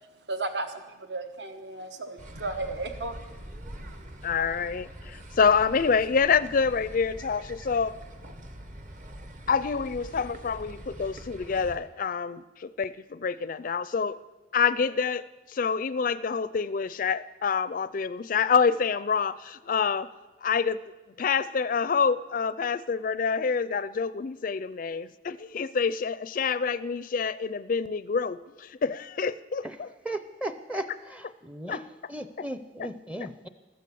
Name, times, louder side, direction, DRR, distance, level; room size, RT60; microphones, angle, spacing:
voice 1, 0.3-3.4 3.9-4.1, right 2 dB, 60° right, 7 dB, 1.2 m, -35 dB
sound 1, 2.2-11.8, equal, 45° right, 1.3 m, -44 dB
voice 2, 4.2-8.0 9.5-14.2 14.5-20.1 20.4-20.8 21.2-29.9 31.7-31.8 32.4-32.5 32.8-32.9, left 5 dB, 45° left, 16 dB, 0.4 m, -27 dB
voice 3, 30.1-30.9 31.1-31.8 32.1-33.5, right 1 dB, 5° right, 10 dB, 0.6 m, -36 dB
15.0 x 13.5 x 6.9 m, 1.2 s
head